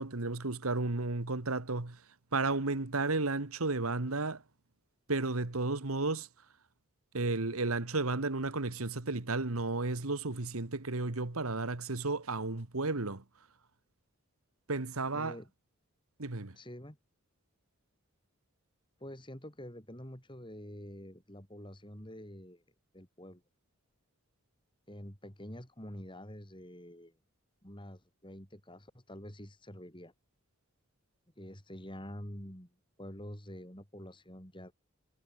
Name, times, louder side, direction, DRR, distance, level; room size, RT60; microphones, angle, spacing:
voice 1, 0.0-2.0 2.3-4.4 5.1-6.3 7.1-13.2 14.7-15.3 16.2-16.5, right 3 dB, 85° right, 1.7 m, -33 dB
voice 2, 15.1-15.5 16.5-17.0 19.0-22.6 22.9-23.4 24.9-27.1 27.6-30.1 31.4-32.7 33.0-34.7, equal, 20° left, 5.1 m, -47 dB
head